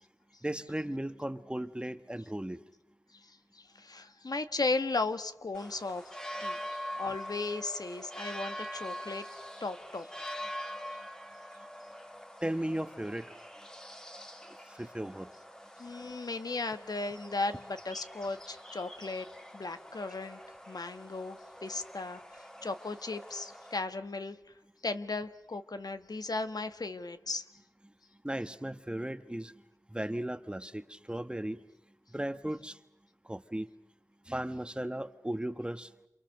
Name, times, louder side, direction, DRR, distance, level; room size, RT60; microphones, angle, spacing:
voice 1, 0.4-2.6 12.4-13.3 14.7-15.3 28.2-29.5 29.9-31.6 32.1-32.8 33.2-33.7 34.3-35.9, right 1 dB, 15° right, 11 dB, 1.2 m, -36 dB
voice 2, 3.1-10.1 15.8-19.3 19.5-20.4 20.7-24.4 24.8-27.5, left 3 dB, 70° left, 9 dB, 1.4 m, -36 dB
sound 1, 5.5-23.8, equal, 10° left, 1.9 m, -44 dB
29.0 x 28.0 x 6.5 m, 0.84 s
wide cardioid pair, 55°, 7 cm